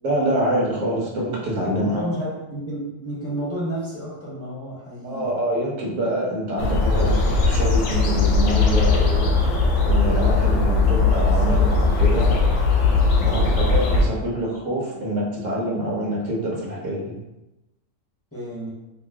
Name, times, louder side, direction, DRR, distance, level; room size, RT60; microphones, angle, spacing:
voice 1, 0.0-2.0 5.0-9.5 9.8-12.3 13.2-17.1, right 1 dB, 75° right, -3 dB, 1.2 m, -26 dB
voice 2, 1.7-5.3 7.0-7.3 11.3-11.6 12.3-12.4 13.2-13.5 18.3-18.7, equal, 15° left, -7 dB, 0.8 m, -31 dB
sound 1, 6.6-14.1, left 3 dB, 75° left, 0.9 m, -19 dB
2.9 x 2.1 x 3.5 m, 0.95 s
omnidirectional pair, 1.3 m